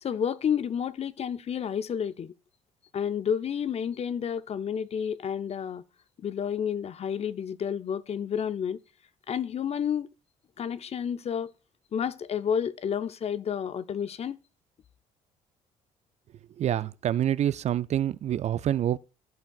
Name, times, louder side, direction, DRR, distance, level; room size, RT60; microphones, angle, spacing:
voice 1, 0.0-2.3 2.9-5.8 6.2-8.8 9.3-10.1 10.6-11.5 11.9-14.4, left 8 dB, 40° left, 0.5 m, -30 dB
voice 2, 16.6-19.0, right 11 dB, 45° right, 0.4 m, -26 dB
14.0 x 5.7 x 2.4 m
hypercardioid pair, 55°, 17 cm